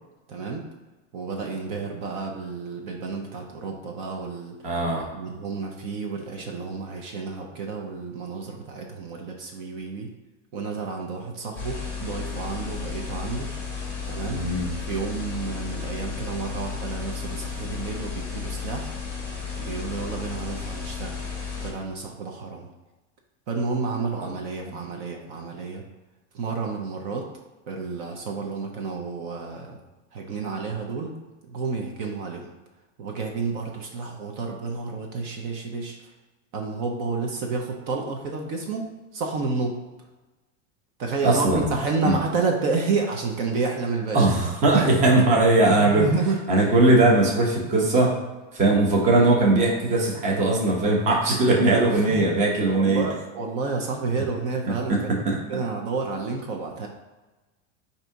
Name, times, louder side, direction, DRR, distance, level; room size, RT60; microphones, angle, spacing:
voice 1, 0.3-0.6 1.1-4.8 5.1-10.1 10.5-13.5 14.1-14.4 14.8-18.9 19.6-21.2 21.6-22.7 23.5-25.8 26.3-27.3 27.7-29.8 30.1-31.1 31.5-32.5 33.0-36.1 36.5-39.8 41.0-44.3 44.7-44.9 45.8-46.4 51.9-52.2 52.7-55.0 55.5-56.9, right 4 dB, 50° right, 1 dB, 0.8 m, -30 dB
voice 2, 4.6-5.1 14.3-14.7 41.2-41.6 42.0-42.1 44.1-46.1 46.5-48.1 48.5-53.0 54.9-55.0 55.3-55.4, right 2 dB, 20° right, -2 dB, 0.8 m, -19 dB
sound 1, 11.5-21.7, left 5 dB, 5° left, 1.1 m, -33 dB
4.0 x 2.8 x 4.6 m, 1.2 s
supercardioid pair, 155°, 38 cm